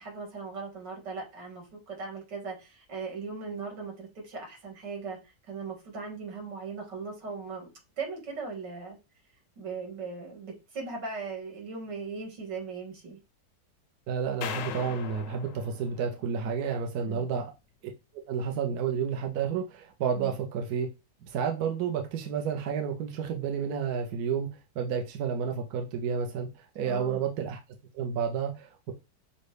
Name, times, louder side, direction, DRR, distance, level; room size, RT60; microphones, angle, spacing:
voice 1, 0.0-7.7 8.0-9.0 9.6-13.2 17.0-17.3 20.1-20.3 26.8-27.2, right 4 dB, 90° right, 2.4 m, -38 dB
voice 2, 14.1-17.5 18.3-20.9 21.3-24.5 24.8-26.5 26.7-27.6 27.9-28.9, right 7 dB, 70° right, 1.1 m, -30 dB
sound 1, 14.4-16.7, left 8 dB, 70° left, 0.7 m, -40 dB
6.4 x 2.2 x 3.2 m
omnidirectional pair, 1.8 m